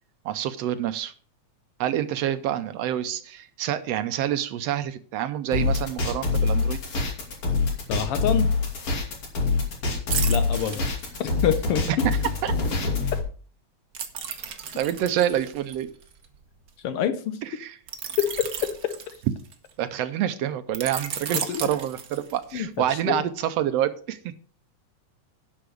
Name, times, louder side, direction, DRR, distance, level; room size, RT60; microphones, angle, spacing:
voice 1, 0.2-1.1 1.8-6.8 11.9-12.0 12.4-12.5 14.7-15.9 17.6-17.8 19.8-24.2, right 11 dB, 75° right, 12 dB, 1.6 m, -27 dB
sound 1, 5.5-13.2, left 4 dB, 55° left, 3.3 m, -25 dB
voice 2, 7.9-8.5 10.2-10.8 11.2-12.1 16.8-17.4 18.2-19.0 21.3-21.7 22.5-23.2, left 9 dB, 75° left, 11 dB, 1.4 m, -27 dB
sound 2, 10.1-11.6 13.9-16.7 17.9-19.7 20.7-22.6 23.0-23.2, right 7 dB, 60° right, 1.0 m, -34 dB
11.5 x 6.0 x 6.2 m, 0.42 s
omnidirectional pair, 3.3 m